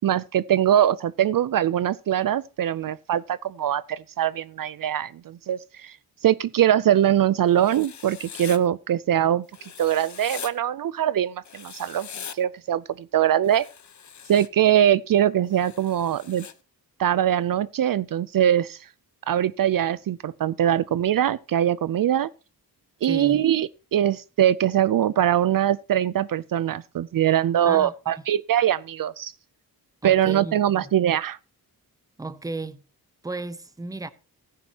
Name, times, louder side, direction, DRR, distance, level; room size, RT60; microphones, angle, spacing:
voice 1, 0.0-6.0 6.2-9.4 9.8-12.1 12.3-13.7 14.3-16.5 17.0-18.8 19.3-22.3 23.0-29.3 30.0-31.4, right 11 dB, 60° right, 0.5 m, -22 dB
Writing, 7.6-8.6 9.5-10.5 11.4-12.4 13.4-14.5 15.5-16.5, left 7 dB, 50° left, 1.0 m, -41 dB
voice 2, 23.0-23.5 27.6-28.1 30.0-30.9 32.2-32.8 33.2-34.1, right 2 dB, 10° right, 0.7 m, -34 dB
15.5 x 10.5 x 2.9 m
wide cardioid pair, 150°, 38 cm